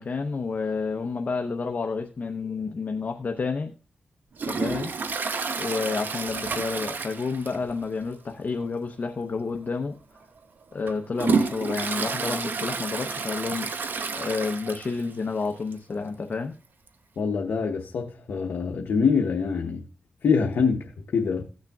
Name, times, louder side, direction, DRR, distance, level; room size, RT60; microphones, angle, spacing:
voice 1, 0.0-3.7 4.5-5.0 5.6-10.0 10.7-13.7 14.1-16.5, left 4 dB, 55° left, 0.8 m, -30 dB
Toilet flush, 4.4-7.8 8.1-8.2 8.6-8.7 9.5-9.7 10.2-15.1 15.4-15.5 15.7-15.8 16.9-17.0, right 4 dB, 70° right, 0.8 m, -30 dB
voice 2, 17.2-19.8 20.2-21.4, left 5 dB, 85° left, 0.9 m, -25 dB
16.5 x 6.5 x 2.4 m
cardioid pair, 60°, 3 cm